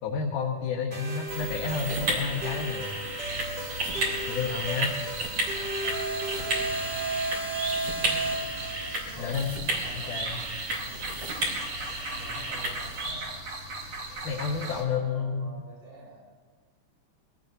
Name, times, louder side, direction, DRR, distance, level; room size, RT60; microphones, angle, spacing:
voice 1, 0.0-2.9 4.3-5.0 9.2-9.6 9.9-10.4 14.2-15.5, left 6 dB, 85° left, -2 dB, 2.8 m, -30 dB
voice 2, 0.7-1.0 1.4-1.5 5.0-5.2 6.3-8.5 9.0-10.3 10.8-11.1 12.1-13.3 14.5-16.2, right 1 dB, 65° right, -8 dB, 7.2 m, -48 dB
sound 1, 0.9-9.0, right 2 dB, 25° right, 1.5 m, -34 dB
sound 2, 1.3-13.1, right 1 dB, 50° right, 4.4 m, -33 dB
sound 3, 3.2-14.8, right 2 dB, 85° right, 3.7 m, -39 dB
22.5 x 17.5 x 2.7 m, 1.5 s
omnidirectional pair, 3.5 m